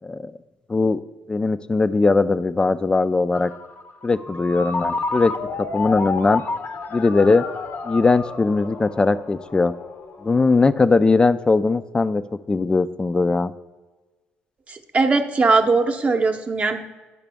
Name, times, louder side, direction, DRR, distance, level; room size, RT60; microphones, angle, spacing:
voice 1, 0.7-1.0 1.3-3.5 4.0-5.3 5.7-6.4 6.9-7.4 7.8-9.7 10.2-12.2 12.5-13.5, left 3 dB, 20° left, 14 dB, 0.4 m, -19 dB
Ringtone, 3.3-10.8, left 4 dB, 50° left, 0.7 m, -30 dB
voice 2, 14.7-16.8, right 3 dB, 35° right, 5 dB, 0.8 m, -20 dB
11.0 x 5.0 x 3.4 m, 1.2 s
supercardioid pair, 75°, 4 cm